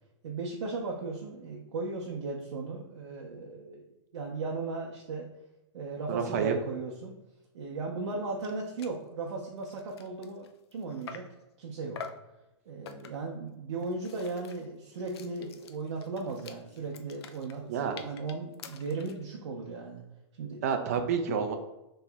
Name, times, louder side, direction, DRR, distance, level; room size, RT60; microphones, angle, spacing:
voice 1, 0.2-3.9 4.1-5.3 5.7-7.2 7.5-11.2 11.6-12.0 12.7-20.0 20.4-20.6, right 3 dB, 75° right, -1 dB, 0.6 m, -36 dB
voice 2, 6.1-6.5 17.7-18.0 20.6-21.6, right 6 dB, 30° right, 5 dB, 0.4 m, -29 dB
sound 1, 8.1-8.2 8.4-8.5 8.8-9.0 9.5-11.4 12.0-12.3 12.9-13.3 13.8-19.2, left 6 dB, 60° left, 0.4 m, -47 dB
3.1 x 2.8 x 3.4 m, 0.97 s
supercardioid pair, 180°, 16 cm